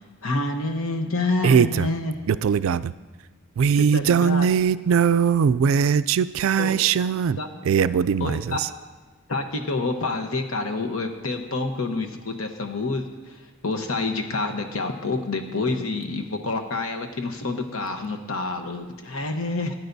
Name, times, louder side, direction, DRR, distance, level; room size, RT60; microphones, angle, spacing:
voice 1, 0.2-2.1 3.8-4.5 6.6-6.8 7.4-7.5 8.2-8.6 9.3-19.7, left 3 dB, 80° left, 5 dB, 1.0 m, -28 dB
voice 2, 1.4-1.9 2.3-2.9 3.6-7.4 7.6-8.7, right 7 dB, 70° right, 15 dB, 0.3 m, -20 dB
17.0 x 9.3 x 2.7 m, 1.3 s
head